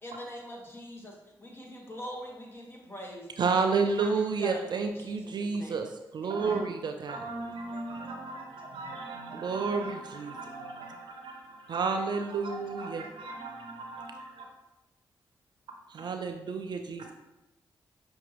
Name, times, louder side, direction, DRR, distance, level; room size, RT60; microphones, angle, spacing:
voice 1, 0.0-3.3 3.6-5.9 6.2-6.7, equal, 25° left, -2 dB, 1.4 m, -43 dB
voice 2, 3.4-7.2 9.3-10.3 11.7-13.0 15.9-17.1, right 4 dB, 60° right, 5 dB, 0.4 m, -30 dB
voice 3, 6.3-6.6 7.1-14.5, right 2 dB, 75° right, 2 dB, 0.7 m, -41 dB
5.8 x 2.6 x 3.0 m, 0.97 s
supercardioid pair, 40°, 9 cm